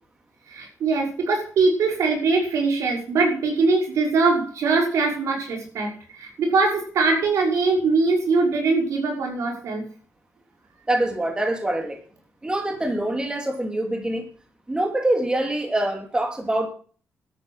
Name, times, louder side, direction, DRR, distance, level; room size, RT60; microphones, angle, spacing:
voice 1, 0.5-9.8, right 3 dB, 80° right, 1 dB, 5.7 m, -22 dB
voice 2, 10.9-12.0 12.4-14.2 14.7-16.7, right 1 dB, 15° right, 3 dB, 2.9 m, -24 dB
13.0 x 9.6 x 6.5 m, 0.41 s
cardioid pair, 115°, 5 cm